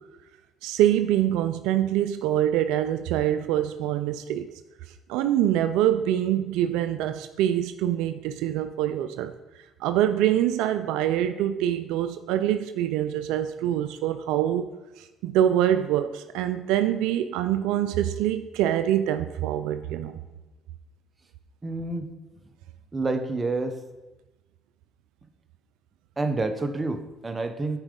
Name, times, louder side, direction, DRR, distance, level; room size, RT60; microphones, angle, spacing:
voice 1, 0.6-4.5 5.1-9.3 9.8-14.7 15.0-20.2, right 11 dB, 85° right, 10 dB, 0.3 m, -25 dB
voice 2, 21.6-22.1 22.9-23.8 26.2-27.8, right 3 dB, 25° right, 7 dB, 0.9 m, -28 dB
8.7 x 4.9 x 3.7 m, 1.1 s
supercardioid pair, 75°, 0 cm